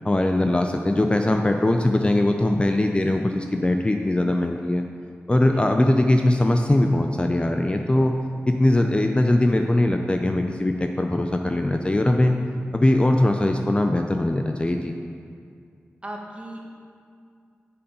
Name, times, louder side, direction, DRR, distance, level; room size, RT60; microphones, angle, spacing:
voice 1, 0.0-4.8 5.3-8.1 8.5-12.4 12.7-14.9, left 1 dB, 25° left, 4 dB, 0.5 m, -21 dB
voice 2, 5.5-5.9 7.8-8.1 16.0-16.6, right 1 dB, 25° right, 0 dB, 1.3 m, -38 dB
6.9 x 5.2 x 5.3 m, 2.3 s
cardioid pair, 45°, 5 cm